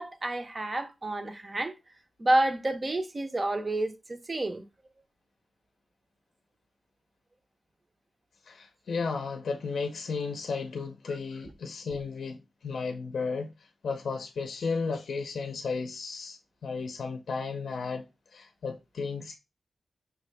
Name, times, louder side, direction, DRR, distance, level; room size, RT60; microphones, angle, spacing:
voice 1, 0.0-1.8 2.2-4.6 11.1-11.2, right 1 dB, 25° right, 0.5 m, -29 dB
voice 2, 8.4-19.4, left 4 dB, 75° left, 0.5 m, -34 dB
5.7 x 2.7 x 3.2 m
wide cardioid pair, 165°, 0 cm